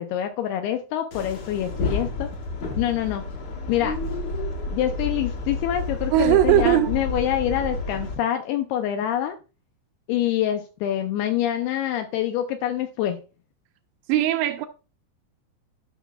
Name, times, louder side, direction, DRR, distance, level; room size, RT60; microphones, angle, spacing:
voice 1, 0.0-2.3 2.8-3.2 3.7-4.0 4.7-9.4 10.1-13.2, left 11 dB, 80° left, 2.3 m, -26 dB
sound 1, 1.1-8.1, left 3 dB, 45° left, 2.4 m, -30 dB
voice 2, 6.1-7.0 14.1-14.7, right 13 dB, 80° right, 2.5 m, -19 dB
14.5 x 6.2 x 2.3 m
omnidirectional pair, 5.0 m